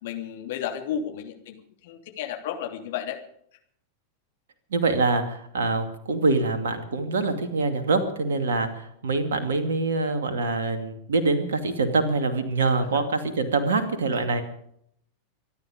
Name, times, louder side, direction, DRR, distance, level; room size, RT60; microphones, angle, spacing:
voice 1, 0.0-1.5 1.8-3.2 14.3-14.4, left 9 dB, 55° left, 4 dB, 3.1 m, -32 dB
voice 2, 4.7-14.4, right 3 dB, 65° right, 7 dB, 2.6 m, -25 dB
25.5 x 11.0 x 5.1 m, 0.68 s
figure-of-eight pair, 90°, 0 cm